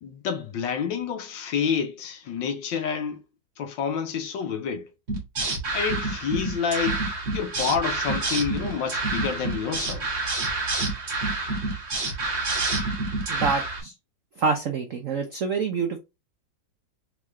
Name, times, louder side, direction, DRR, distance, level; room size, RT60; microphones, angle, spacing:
voice 1, 0.0-3.2 3.6-4.9 5.7-7.0 7.3-10.1, left 7 dB, 70° left, 1.4 m, -28 dB
sound 1, 5.1-13.8, right 2 dB, 35° right, 1.5 m, -28 dB
voice 2, 13.3-13.9 14.4-16.0, right 5 dB, 80° right, 0.7 m, -26 dB
3.7 x 3.6 x 3.2 m
omnidirectional pair, 2.2 m